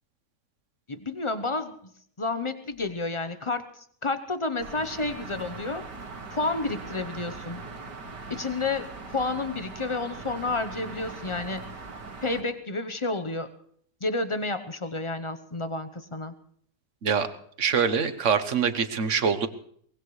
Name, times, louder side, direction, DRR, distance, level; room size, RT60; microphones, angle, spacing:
voice 1, 0.9-1.9 2.2-5.8 6.3-7.6 8.3-11.7 12.2-13.5 14.0-16.3, left 3 dB, 30° left, 10 dB, 0.6 m, -30 dB
sound 1, 4.6-12.4, right 3 dB, 85° right, 2.4 m, -41 dB
voice 2, 17.6-19.5, right 6 dB, 50° right, 11 dB, 1.2 m, -24 dB
23.0 x 19.5 x 3.2 m, 0.63 s
omnidirectional pair, 1.8 m